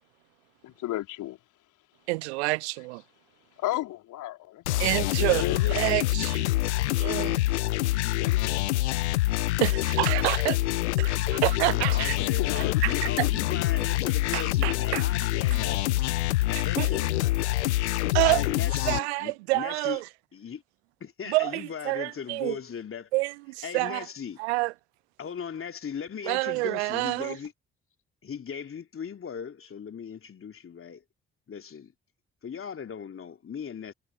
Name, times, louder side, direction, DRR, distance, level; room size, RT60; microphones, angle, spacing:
voice 1, 0.6-1.4 3.6-5.9 8.2-8.7 12.2-13.3, left 15 dB, 60° left, 3.7 m, -34 dB
voice 2, 2.1-3.0 4.8-5.4 5.7-6.5 7.0-7.4 9.6-10.6 11.0-12.2 12.8-13.3 14.3-15.0 16.8-16.9 18.1-18.4 18.9-20.0 21.3-22.6 23.1-24.1 24.4-24.7 26.2-27.4, right 24 dB, 70° right, 0.6 m, -27 dB
sound 1, 4.7-19.0, left 17 dB, 75° left, 0.8 m, -26 dB
voice 3, 11.7-15.9 16.4-17.4 18.2-20.0 20.3-20.6 21.0-23.1 23.6-24.4 25.2-27.5 28.2-31.0 31.5-31.9 32.4-33.9, left 7 dB, 40° left, 2.8 m, -38 dB
figure-of-eight pair, 40°, 34 cm